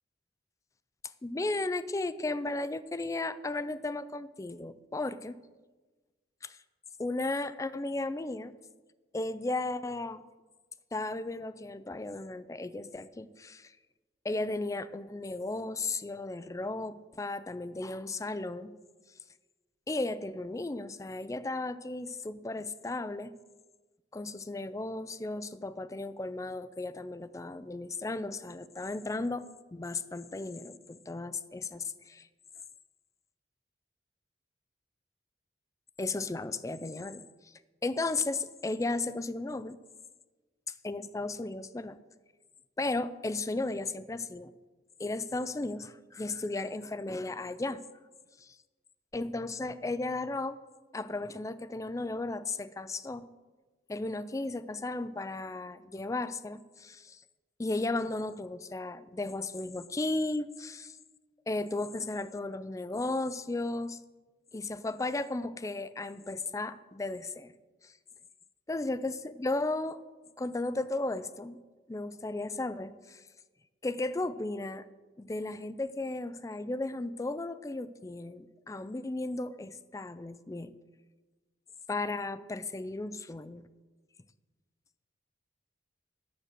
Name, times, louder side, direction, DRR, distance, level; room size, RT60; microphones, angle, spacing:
voice 1, 1.2-5.4 6.4-6.6 7.0-8.5 9.1-10.2 10.9-13.8 14.2-18.7 19.9-23.3 24.1-29.4 29.7-32.3 36.0-37.5 37.8-39.8 40.8-42.0 42.8-44.5 45.0-47.8 48.4-48.6 49.1-50.6 50.9-53.3 53.9-57.2 57.6-61.0 61.5-64.0 64.5-67.5 67.8-67.9 68.7-70.0 70.4-71.6 71.9-73.2 73.8-74.9 75.2-80.7 81.9-83.7, left 2 dB, 15° left, 15 dB, 0.4 m, -35 dB
9.9 x 7.6 x 6.6 m, 1.3 s
head